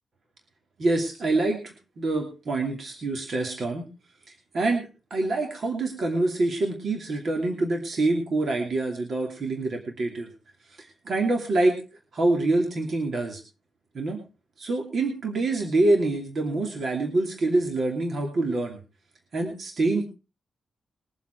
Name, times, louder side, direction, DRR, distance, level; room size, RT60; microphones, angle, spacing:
voice 1, 0.8-3.9 4.5-10.3 10.7-11.8 12.1-13.4 13.9-14.2 14.6-18.8 19.3-20.0, right 2 dB, 50° right, 2 dB, 2.7 m, -26 dB
21.5 x 7.6 x 4.6 m, 0.33 s
wide cardioid pair, 150°, 0 cm